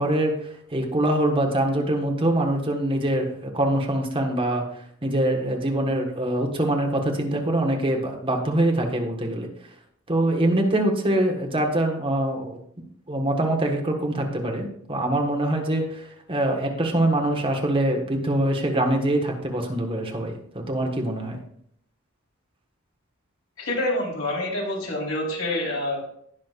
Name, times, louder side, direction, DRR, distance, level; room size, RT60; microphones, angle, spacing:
voice 1, 0.0-4.7 5.0-9.5 10.1-12.6 13.1-21.4, right 1 dB, 25° right, 2 dB, 1.5 m, -24 dB
voice 2, 23.6-26.0, left 1 dB, 80° left, -3 dB, 3.9 m, -27 dB
19.0 x 6.3 x 2.5 m, 0.67 s
head